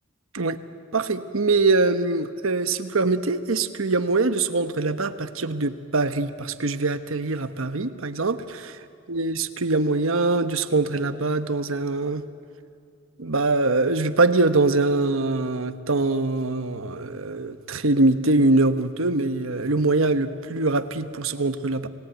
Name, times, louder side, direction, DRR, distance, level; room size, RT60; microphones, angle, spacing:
voice 1, 0.9-8.8 9.1-12.2 13.2-21.9, right 3 dB, 75° right, 10 dB, 1.2 m, -23 dB
29.5 x 18.5 x 9.2 m, 2.4 s
head